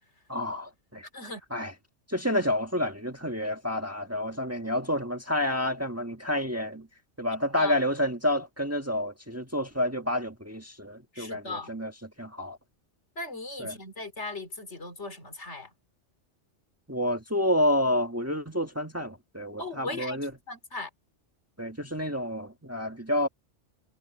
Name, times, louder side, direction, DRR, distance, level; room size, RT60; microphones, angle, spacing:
voice 1, 0.3-1.0 1.5-1.7 2.1-6.9 7.2-11.9 12.2-12.6 13.6-13.8 16.9-20.3 21.6-23.3, left 1 dB, 10° right, 1.4 m, -29 dB
voice 2, 11.1-11.7 13.2-15.7 19.6-20.2 20.5-20.9, left 2 dB, 70° left, 3.5 m, -38 dB
omnidirectional pair, 1.2 m